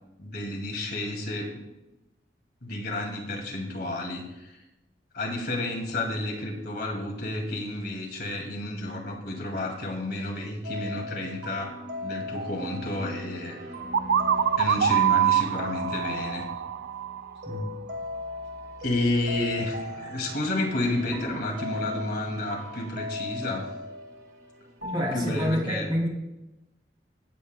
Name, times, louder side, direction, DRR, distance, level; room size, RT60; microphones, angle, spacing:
voice 1, 0.2-1.7 2.6-4.6 5.1-11.7 12.0-13.6 14.6-16.5 18.8-23.7 25.1-25.9, left 2 dB, 55° left, 0 dB, 2.2 m, -31 dB
sound 1, 10.6-25.5, left 2 dB, 60° right, 1.7 m, -38 dB
sound 2, 13.9-17.7, right 9 dB, 75° right, 0.4 m, -25 dB
voice 2, 17.5-17.8 24.9-26.1, equal, 25° right, -1 dB, 2.4 m, -28 dB
16.5 x 8.4 x 2.2 m, 0.96 s
head